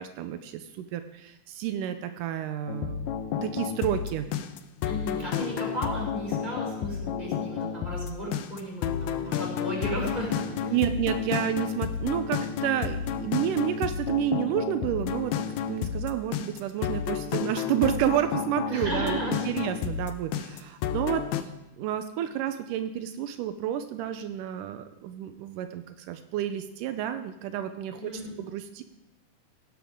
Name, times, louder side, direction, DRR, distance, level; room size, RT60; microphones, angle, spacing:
voice 1, 0.0-3.1 3.4-4.3 10.7-15.4 15.7-21.5 21.8-28.1 28.4-28.8, right 10 dB, 85° right, 8 dB, 2.3 m, -30 dB
sound 1, 2.7-21.4, left 8 dB, 75° left, 1.9 m, -31 dB
voice 2, 4.8-10.7 18.7-19.5 27.9-28.3, equal, 15° right, -5 dB, 5.8 m, -34 dB
16.5 x 12.0 x 3.7 m, 0.92 s
omnidirectional pair, 3.7 m